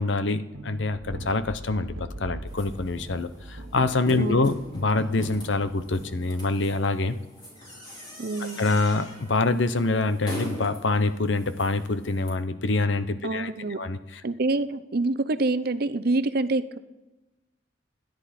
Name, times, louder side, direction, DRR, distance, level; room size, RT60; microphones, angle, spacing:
voice 1, 0.0-7.2 8.6-13.5 13.8-14.2, left 3 dB, 70° left, 11 dB, 0.8 m, -25 dB
sound 1, 0.5-6.7, right 1 dB, 75° right, 1.5 m, -42 dB
sound 2, 2.5-12.3, equal, 25° left, 4.4 m, -41 dB
voice 2, 4.2-4.5 8.2-8.7 13.2-13.8 14.2-16.8, right 2 dB, 55° right, 13 dB, 0.7 m, -26 dB
27.0 x 10.5 x 4.3 m, 1.1 s
head